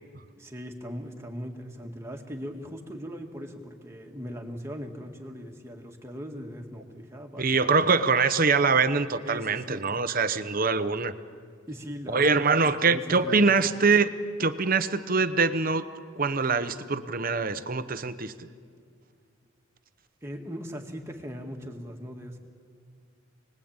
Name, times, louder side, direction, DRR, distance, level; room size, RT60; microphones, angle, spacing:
voice 1, 0.4-7.7 9.2-9.8 11.7-13.7 20.2-22.4, equal, 10° right, 2 dB, 2.0 m, -39 dB
voice 2, 7.4-11.1 12.1-14.1 14.4-15.8 16.2-18.5, right 4 dB, 40° right, 11 dB, 0.9 m, -24 dB
28.5 x 20.5 x 8.9 m, 2.1 s
head